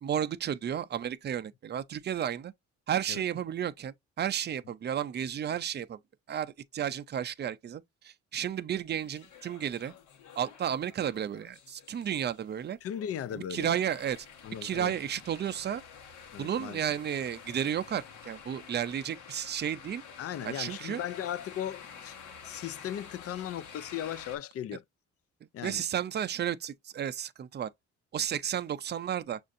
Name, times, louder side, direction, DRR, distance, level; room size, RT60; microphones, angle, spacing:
voice 1, 0.0-2.5 2.9-6.0 6.3-9.9 10.4-12.8 13.5-14.3 14.6-15.8 16.4-20.0 20.4-21.0 25.6-27.7 28.1-29.4, right 9 dB, 35° right, 0.5 m, -32 dB
sound 1, 8.9-24.4, left 6 dB, 80° left, 1.1 m, -50 dB
voice 2, 12.8-13.7 14.4-14.9 16.3-16.8 20.2-22.2 22.4-24.8 25.5-25.8, left 10 dB, 50° left, 0.4 m, -37 dB
6.3 x 2.6 x 2.5 m
cardioid pair, 90°, 30 cm